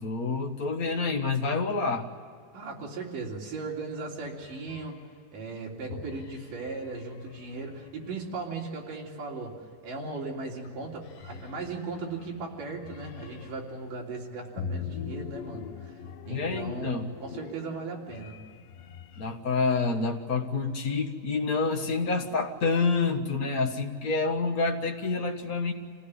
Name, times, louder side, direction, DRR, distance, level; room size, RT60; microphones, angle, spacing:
voice 1, 0.0-2.1 16.3-17.0 19.2-25.7, left 4 dB, 60° left, 2 dB, 0.9 m, -28 dB
voice 2, 2.5-5.0 5.3-9.6 9.8-15.9 16.3-18.4, right 3 dB, 70° right, -2 dB, 5.0 m, -37 dB
sound 1, 4.2-5.1 5.9-8.5 10.2-10.5 10.8-13.8 14.6-19.4, left 6 dB, 85° left, 2.7 m, -43 dB
27.0 x 16.5 x 9.7 m, 2.2 s
omnidirectional pair, 4.0 m